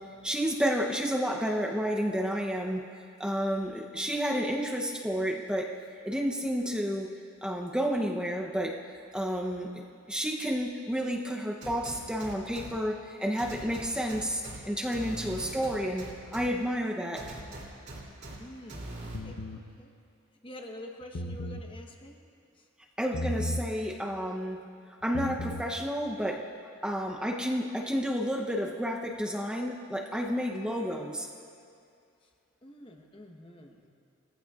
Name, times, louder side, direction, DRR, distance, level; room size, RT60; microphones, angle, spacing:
voice 1, 0.2-2.9 3.2-5.7 6.0-7.1 7.4-8.8 9.1-9.8 10.1-16.1 16.3-17.2 23.0-24.6 25.0-26.4 26.8-31.3, equal, 5° right, 0 dB, 0.7 m, -30 dB
sound 1, 11.6-12.7 13.4-14.6 14.9-16.5 17.2-18.3 18.7-19.2, right 2 dB, 50° right, 2.8 m, -41 dB
voice 2, 18.4-20.0 20.4-22.2 22.5-22.7 32.2-32.3 32.6-33.9, left 1 dB, 25° left, 3 dB, 1.0 m, -47 dB
sound 2, 19.1-19.6 21.0-21.7 23.1-23.7 25.0-25.7, left 1 dB, 75° left, 0.8 m, -34 dB
21.5 x 15.0 x 2.4 m, 2.4 s
head